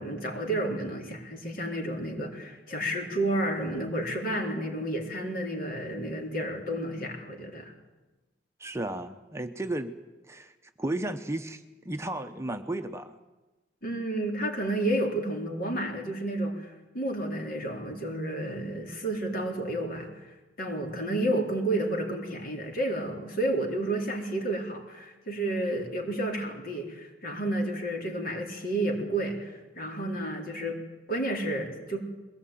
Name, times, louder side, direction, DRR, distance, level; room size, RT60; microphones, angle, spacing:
voice 1, 0.0-7.7 13.8-20.3 20.6-30.8 31.1-32.0, right 1 dB, 55° left, 1 dB, 4.0 m, -31 dB
voice 2, 8.6-9.9 10.2-10.5 10.8-13.2, right 1 dB, 15° right, 7 dB, 0.8 m, -34 dB
22.0 x 18.0 x 9.2 m, 1.1 s
head